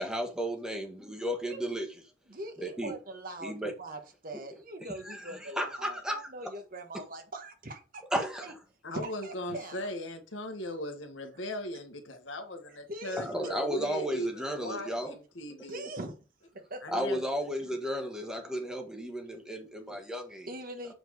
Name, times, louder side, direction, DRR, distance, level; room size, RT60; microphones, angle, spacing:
voice 1, 0.0-1.9 2.6-2.9 3.4-3.7 5.0-6.2 8.1-8.4 13.2-15.1 16.9-20.5, equal, 5° right, 1.5 m, -34 dB
voice 2, 2.3-8.0 8.4-8.5 8.9-9.9 12.9-13.6 15.7-16.1 16.5-17.0 20.5-20.9, right 1 dB, 45° right, 1.5 m, -42 dB
voice 3, 8.8-15.8 16.8-17.2 19.9-20.0, equal, 80° left, 1.6 m, -38 dB
7.8 x 4.4 x 4.7 m
head